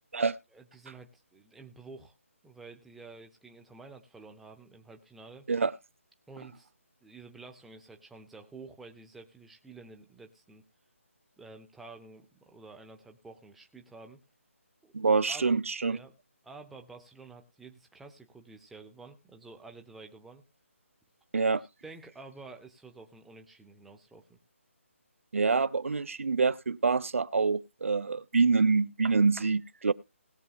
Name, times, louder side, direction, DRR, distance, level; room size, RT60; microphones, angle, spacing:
voice 1, 0.5-2.1 2.4-5.5 6.3-6.7 7.0-10.6 11.4-14.2 14.8-14.9 15.3-15.5 15.8-16.1 16.4-20.4 21.6-24.4, right 3 dB, ahead, 0.5 m, -50 dB
voice 2, 14.9-16.0 21.3-21.6 25.3-29.9, right 4 dB, 65° right, 0.8 m, -26 dB
20.0 x 6.8 x 2.3 m
hypercardioid pair, 170°, 8 cm